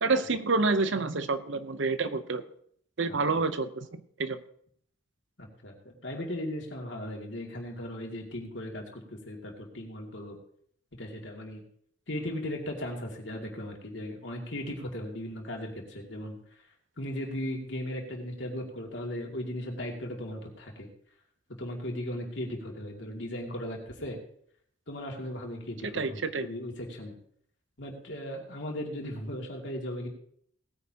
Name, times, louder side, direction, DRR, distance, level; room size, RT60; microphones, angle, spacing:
voice 1, 0.0-2.4 3.0-4.4 25.9-26.5, right 3 dB, 75° right, 11 dB, 0.8 m, -28 dB
voice 2, 5.4-10.4 11.0-11.6 12.1-16.4 17.0-20.9 21.6-24.2 24.9-27.1 27.8-30.1, left 1 dB, 70° left, 0 dB, 2.5 m, -37 dB
18.5 x 9.5 x 2.9 m, 0.64 s
head